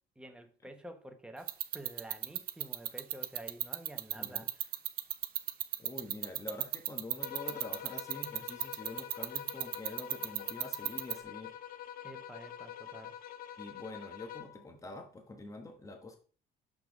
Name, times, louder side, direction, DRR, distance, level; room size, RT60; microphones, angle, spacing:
voice 1, 0.2-4.7 6.1-6.2 12.0-13.2, right 1 dB, 5° right, 0.9 m, -49 dB
sound 1, 1.5-11.1, right 13 dB, 60° right, 0.6 m, -33 dB
voice 2, 4.1-4.5 5.8-11.5 13.6-16.2, left 2 dB, 20° left, 1.2 m, -46 dB
sound 2, 7.2-14.6, left 10 dB, 60° left, 0.6 m, -46 dB
6.4 x 5.8 x 3.5 m
cardioid pair, 110°, 17 cm